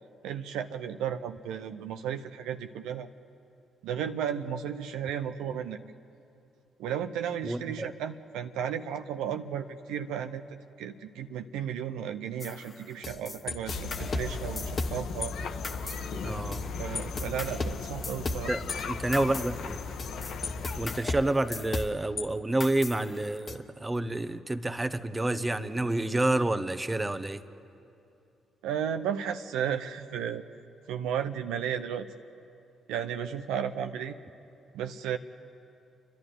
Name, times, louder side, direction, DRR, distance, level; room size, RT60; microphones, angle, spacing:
voice 1, 0.2-3.1 3.8-5.8 6.8-10.4 10.8-15.3 16.8-18.5 28.6-30.4 30.9-32.1 32.9-34.1 34.7-35.2, right 8 dB, 75° right, 7 dB, 0.6 m, -34 dB
voice 2, 7.4-7.9 16.2-16.6 18.5-19.8 20.8-27.4, right 2 dB, 20° right, 11 dB, 1.1 m, -29 dB
sound 1, 12.4-15.3 15.6-16.7 16.9-22.2 22.6-23.5, left 3 dB, 40° left, 1.3 m, -36 dB
sound 2, 13.7-21.0, left 4 dB, 65° left, 1.2 m, -36 dB
28.5 x 12.0 x 9.6 m, 2.7 s
hypercardioid pair, 45°, 0 cm